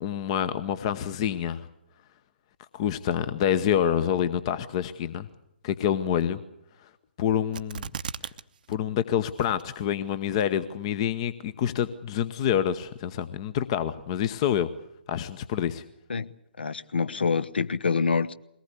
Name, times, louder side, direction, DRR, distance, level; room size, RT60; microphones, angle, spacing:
voice 1, 0.0-1.7 2.7-5.3 5.6-6.4 6.8-6.9 7.2-7.9 8.7-14.7 15.1-15.8, left 9 dB, 35° left, 14 dB, 0.9 m, -27 dB
sound 1, 7.5-8.4 8.7-8.8 9.4-9.9 10.4-10.5, right 7 dB, 50° right, 0.8 m, -36 dB
voice 2, 16.6-18.3, left 5 dB, 65° left, 14 dB, 1.1 m, -26 dB
22.0 x 19.0 x 8.4 m, 0.82 s
figure-of-eight pair, 135°, 6 cm